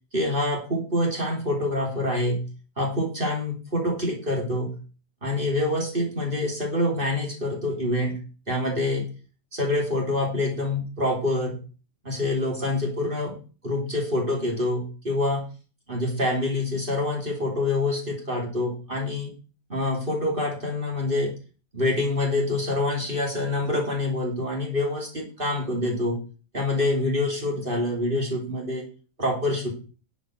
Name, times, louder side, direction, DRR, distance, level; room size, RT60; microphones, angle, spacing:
voice 1, 0.1-2.5 2.8-4.7 5.2-8.2 8.5-9.1 9.5-11.6 12.0-13.4 13.6-15.5 15.9-19.3 19.7-21.3 21.7-26.2 26.5-28.8 29.2-29.7, left 1 dB, 35° right, 0 dB, 3.5 m, -26 dB
11.0 x 6.9 x 6.3 m, 0.36 s
omnidirectional pair, 1.5 m